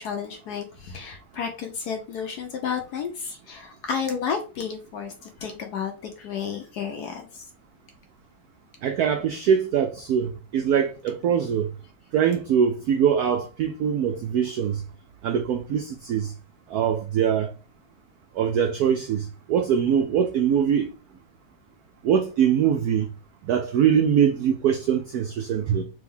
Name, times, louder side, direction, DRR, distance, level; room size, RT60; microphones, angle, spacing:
voice 1, 0.0-7.4, left 6 dB, 70° left, 1.0 m, -32 dB
voice 2, 8.8-11.7 12.1-14.8 15.2-16.3 16.7-17.5 18.3-20.9 22.0-23.1 23.4-25.8, right 8 dB, 85° right, 0.8 m, -23 dB
3.4 x 3.2 x 3.5 m
omnidirectional pair, 2.2 m